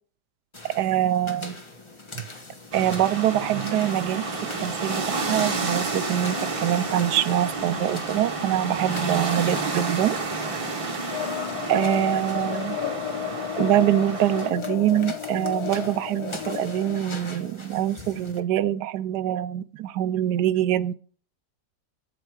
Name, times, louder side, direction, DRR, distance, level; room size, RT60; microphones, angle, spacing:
sound 1, 0.5-18.4, left 2 dB, 20° left, 0.9 m, -43 dB
voice 1, 0.7-1.5 2.2-2.3 2.7-4.2 4.6-10.2 11.7-12.8 13.6-20.9, right 12 dB, 75° right, 1.1 m, -24 dB
sound 2, 2.7-14.5, right 3 dB, 25° right, 0.8 m, -30 dB
sound 3, 11.1-17.0, left 12 dB, 70° left, 1.0 m, -32 dB
8.0 x 7.8 x 4.8 m
omnidirectional pair, 1.8 m